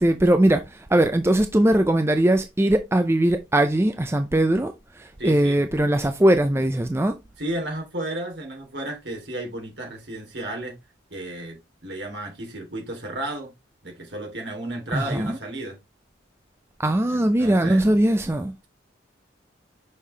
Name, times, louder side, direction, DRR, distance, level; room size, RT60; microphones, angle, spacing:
voice 1, 0.0-7.2 14.9-15.4 16.8-18.5, right 1 dB, 15° right, 0.5 m, -20 dB
voice 2, 5.2-5.6 7.4-10.7 11.1-13.5 13.8-15.8 17.0-18.0, right 1 dB, 65° right, 3.2 m, -33 dB
6.5 x 5.5 x 3.3 m
head